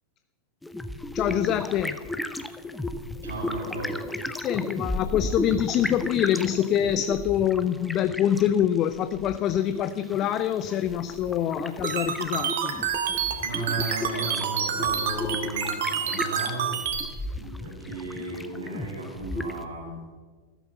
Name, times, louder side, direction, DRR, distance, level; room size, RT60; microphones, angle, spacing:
sound 1, 0.6-19.7, left 1 dB, 5° left, 1.0 m, -35 dB
voice 1, 1.1-2.1 4.4-12.7, left 10 dB, 35° left, 12 dB, 0.6 m, -25 dB
voice 2, 3.2-4.0 13.4-16.8 17.3-20.0, right 2 dB, 80° right, -6 dB, 6.4 m, -35 dB
sound 2, 11.8-17.0, right 8 dB, 60° right, 2.1 m, -28 dB
15.0 x 13.5 x 6.9 m, 1.4 s
figure-of-eight pair, 90°, 0 cm